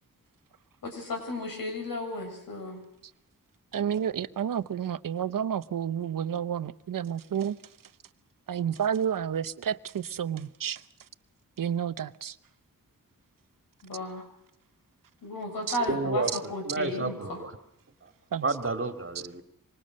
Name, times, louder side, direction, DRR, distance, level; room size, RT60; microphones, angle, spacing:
voice 1, 0.8-2.8 13.8-14.2 15.2-16.2 16.5-17.4, left 1 dB, 85° left, 6.9 m, -34 dB
voice 2, 3.7-7.6 8.5-10.8 11.6-12.3 15.7-15.8 18.3-18.5, right 8 dB, 75° right, 0.9 m, -30 dB
voice 3, 15.8-17.6 18.4-19.4, right 3 dB, 40° right, 2.4 m, -31 dB
26.0 x 25.0 x 6.5 m
wide cardioid pair, 115°, 33 cm